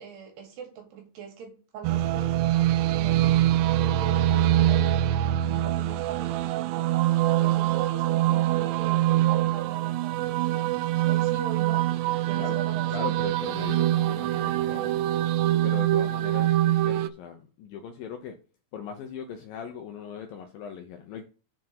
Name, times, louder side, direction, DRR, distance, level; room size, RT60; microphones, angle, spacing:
voice 1, 0.0-3.4 3.7-10.7 11.0-11.9 12.3-13.1, right 7 dB, 70° right, 3.9 m, -42 dB
sound 1, 1.8-17.1, right 13 dB, 90° right, 2.8 m, -24 dB
voice 2, 12.9-15.1 15.6-18.4 18.7-21.2, left 7 dB, 80° left, 2.0 m, -39 dB
7.4 x 4.6 x 5.9 m
omnidirectional pair, 5.0 m